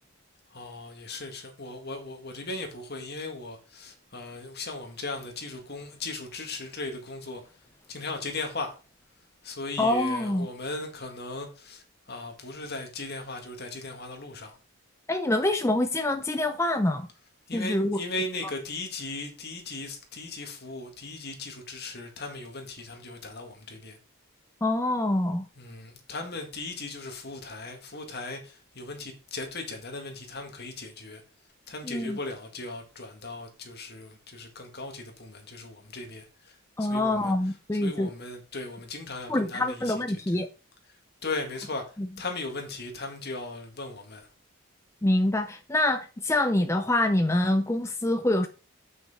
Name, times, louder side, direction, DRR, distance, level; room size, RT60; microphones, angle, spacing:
voice 1, 0.5-7.4 7.9-8.8 9.4-11.8 12.1-14.6 17.5-24.0 25.6-31.2 31.7-37.3 37.8-39.9 40.3-40.4 41.2-41.8 42.2-44.3, left 2 dB, 45° left, 1.8 m, -37 dB
voice 2, 9.8-10.5 15.1-17.1 17.5-18.0 24.6-25.4 31.8-32.2 36.8-38.1 39.3-40.5 42.0-42.1 45.0-48.5, left 1 dB, 10° left, 0.4 m, -25 dB
7.8 x 6.0 x 4.2 m
head